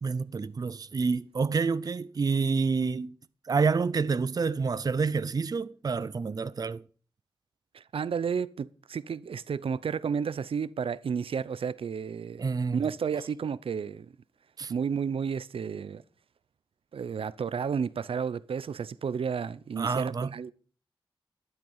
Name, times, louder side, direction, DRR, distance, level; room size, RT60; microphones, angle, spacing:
voice 1, 0.0-3.1 3.5-6.8 12.4-12.8 14.6-14.7 19.8-20.3, right 4 dB, 45° right, 0.5 m, -28 dB
voice 2, 7.7-14.1 14.7-16.0 16.9-20.5, right 6 dB, 85° right, 0.6 m, -32 dB
12.0 x 10.5 x 5.5 m
wide cardioid pair, 120°, 9 cm